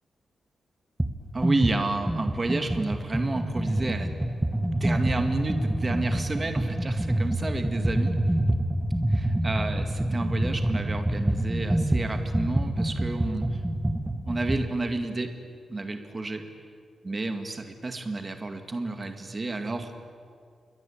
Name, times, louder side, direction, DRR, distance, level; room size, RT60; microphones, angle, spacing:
sound 1, 1.0-1.2 1.4-14.7, right 1 dB, 5° right, 1.1 m, -27 dB
voice 1, 1.3-4.1 4.8-8.2 9.1-13.6 14.3-15.3 15.7-16.4 17.0-19.9, right 2 dB, 20° right, 6 dB, 2.2 m, -30 dB
28.5 x 22.5 x 8.7 m, 2.2 s
wide cardioid pair, 175°, 0 cm